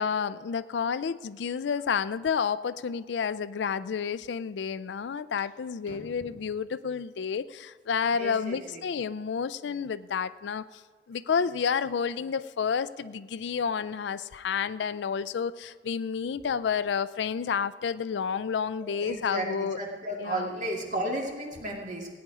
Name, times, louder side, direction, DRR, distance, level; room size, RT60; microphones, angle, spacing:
voice 1, 0.0-10.6 11.1-19.8 20.2-20.5, left 6 dB, 65° left, 16 dB, 0.4 m, -30 dB
voice 2, 5.9-6.3 8.1-8.8 18.8-22.1, right 1 dB, 45° right, 0 dB, 2.2 m, -34 dB
17.5 x 9.5 x 4.9 m, 1.4 s
head